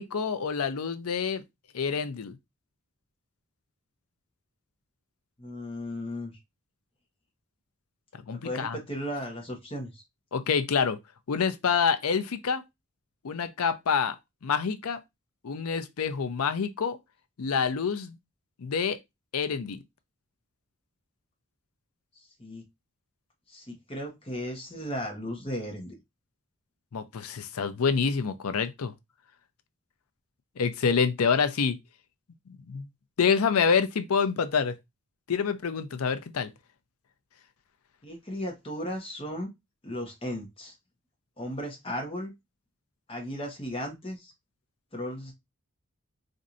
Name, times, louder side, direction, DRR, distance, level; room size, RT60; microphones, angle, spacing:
voice 1, 0.0-1.4 1.7-2.3 8.1-8.8 10.3-11.0 11.3-12.6 13.2-14.2 14.4-15.0 15.4-17.0 17.4-18.2 18.6-19.0 19.3-19.8 26.9-28.9 30.6-31.8 32.7-32.9 33.2-34.7 35.3-36.5, left 6 dB, 90° left, 0.5 m, -27 dB
voice 2, 5.4-6.4 8.3-10.0 22.2-22.6 23.5-26.0 38.0-39.5 39.8-40.7 41.4-42.3 43.1-44.3 44.9-45.3, equal, 25° left, 1.0 m, -36 dB
4.3 x 2.6 x 2.5 m
head